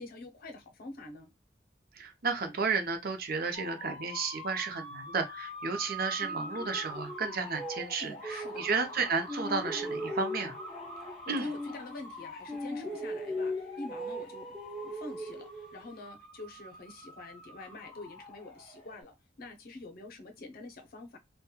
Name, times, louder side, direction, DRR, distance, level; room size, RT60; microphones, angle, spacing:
voice 1, 0.0-1.3 8.0-8.7 11.0-21.2, left 2 dB, 55° left, 0.6 m, -46 dB
voice 2, 1.9-10.6 11.3-11.5, right 4 dB, 55° right, 0.6 m, -33 dB
sound 1, 3.5-19.0, equal, 35° left, 1.1 m, -45 dB
sound 2, 6.2-9.0 9.3-12.2 12.5-16.0, equal, 5° right, 0.6 m, -39 dB
2.9 x 2.2 x 2.2 m
head